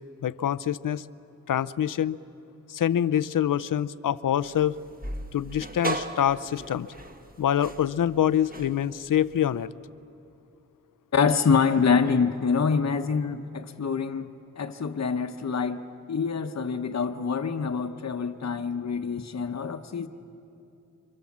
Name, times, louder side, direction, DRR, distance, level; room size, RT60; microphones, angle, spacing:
voice 1, 0.2-1.1 1.5-2.2 2.7-4.8 5.3-6.9 7.4-9.7, left 10 dB, 90° left, 16 dB, 0.6 m, -25 dB
sound 1, 4.4-9.7, right 2 dB, 30° right, 1.7 m, -37 dB
voice 2, 11.1-20.1, left 5 dB, 55° left, 6 dB, 1.0 m, -26 dB
27.5 x 25.0 x 7.3 m, 2.7 s
wide cardioid pair, 65°, 31 cm